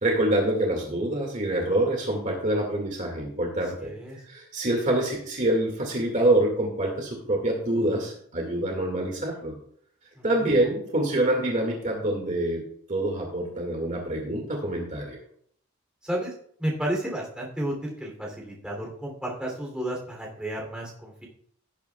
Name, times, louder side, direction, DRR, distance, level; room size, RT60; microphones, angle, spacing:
voice 1, 0.0-3.9 4.3-9.5 10.2-12.6 12.9-15.2, right 1 dB, 35° right, 0 dB, 2.1 m, -26 dB
voice 2, 3.8-4.2 10.2-10.5 16.0-16.3 16.6-21.3, right 1 dB, 5° right, -2 dB, 3.0 m, -32 dB
17.5 x 8.4 x 2.3 m, 0.64 s
head